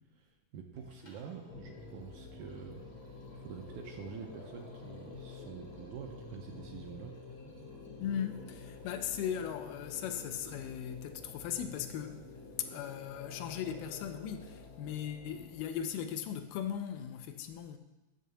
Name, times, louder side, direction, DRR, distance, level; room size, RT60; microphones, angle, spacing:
voice 1, 0.2-7.1, right 6 dB, 80° right, 1.9 m, -47 dB
Liquid, 0.8-14.8, left 1 dB, 50° left, 0.5 m, -60 dB
sound 1, 1.5-15.9, left 4 dB, 65° left, 1.8 m, -49 dB
voice 2, 8.0-12.2 12.6-17.8, left 9 dB, 80° left, 2.1 m, -38 dB
10.5 x 3.7 x 6.8 m
omnidirectional pair, 4.0 m